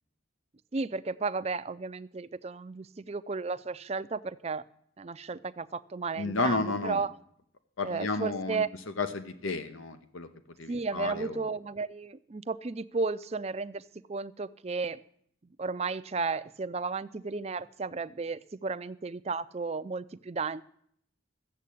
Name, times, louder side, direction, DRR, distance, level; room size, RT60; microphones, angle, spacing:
voice 1, 0.7-4.6 5.0-7.1 7.8-8.7 10.7-13.8 14.1-15.0 15.6-20.6, right 4 dB, 30° right, 13 dB, 0.4 m, -33 dB
voice 2, 6.2-7.0 7.8-8.6 9.0-10.3 10.6-11.5, left 3 dB, 80° left, 10 dB, 0.9 m, -32 dB
14.0 x 7.5 x 8.4 m, 0.66 s
head